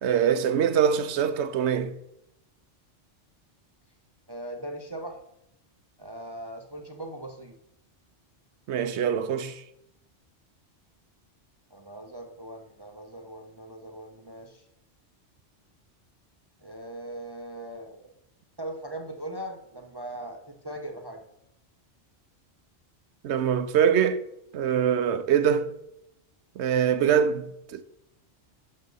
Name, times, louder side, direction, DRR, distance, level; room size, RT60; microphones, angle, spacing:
voice 1, 0.0-2.0 8.7-9.6 23.2-24.2 24.5-25.7 26.6-27.8, right 8 dB, 75° right, 0.9 m, -24 dB
voice 2, 4.3-5.2 6.0-7.6 11.7-14.6 16.6-18.1 18.6-21.3, right 1 dB, 25° right, 0.6 m, -40 dB
12.0 x 4.1 x 5.4 m
omnidirectional pair, 1.2 m